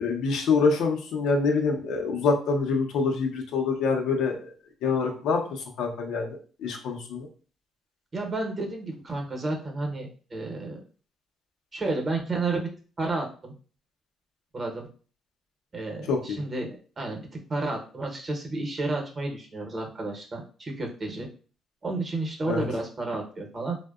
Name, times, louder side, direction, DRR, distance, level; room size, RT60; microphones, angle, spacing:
voice 1, 0.0-4.5 4.8-5.4 5.8-6.3 6.6-7.3 16.1-16.4 22.5-22.6, left 4 dB, 85° left, 2 dB, 0.5 m, -25 dB
voice 2, 8.1-10.8 11.7-12.7 13.0-13.5 14.5-14.9 15.7-17.2 17.5-21.3 21.8-23.8, right 2 dB, 35° right, 1 dB, 0.8 m, -31 dB
2.6 x 2.1 x 2.3 m, 0.39 s
cardioid pair, 90°, 0 cm